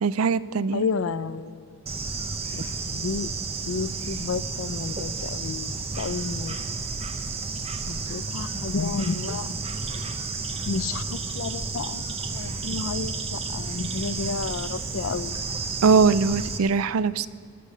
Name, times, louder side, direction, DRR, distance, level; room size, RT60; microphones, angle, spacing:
voice 1, 0.0-0.8 15.8-17.3, right 5 dB, 85° right, 17 dB, 0.4 m, -21 dB
voice 2, 0.7-2.0 2.5-3.3 3.7-6.6 7.9-9.5 10.0-10.1 10.6-15.4, left 4 dB, 70° left, 15 dB, 0.5 m, -31 dB
Bird / Insect, 1.9-16.6, right 4 dB, 30° right, 0.7 m, -32 dB
19.0 x 6.6 x 6.5 m, 2.2 s
head